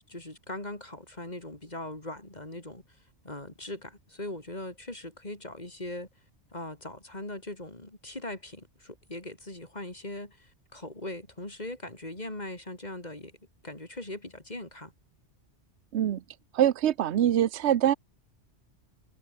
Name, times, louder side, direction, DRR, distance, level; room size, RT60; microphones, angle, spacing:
voice 1, 0.1-3.0 3.2-6.1 6.5-13.4 13.6-14.9, left 1 dB, 35° left, 4.1 m, -40 dB
voice 2, 16.5-17.9, right 11 dB, 70° right, 1.1 m, -24 dB
omnidirectional pair, 1.2 m